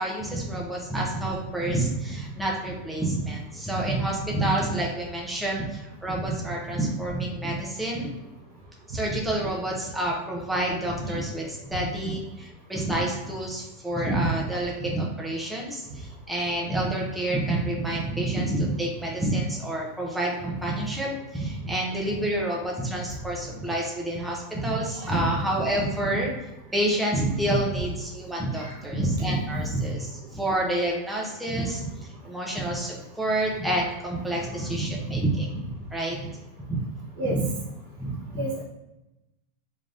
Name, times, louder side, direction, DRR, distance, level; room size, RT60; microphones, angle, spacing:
voice 1, 0.0-8.1 8.9-26.3 26.7-31.9 32.2-36.3 36.7-36.8 37.3-37.4 38.0-38.4, right 1 dB, 5° right, -3 dB, 0.6 m, -28 dB
voice 2, 28.6-29.1 29.4-29.7 37.2-37.4 38.4-38.6, right 1 dB, 65° right, -2 dB, 1.1 m, -30 dB
3.8 x 3.3 x 2.5 m, 0.98 s
supercardioid pair, 155°, 0 cm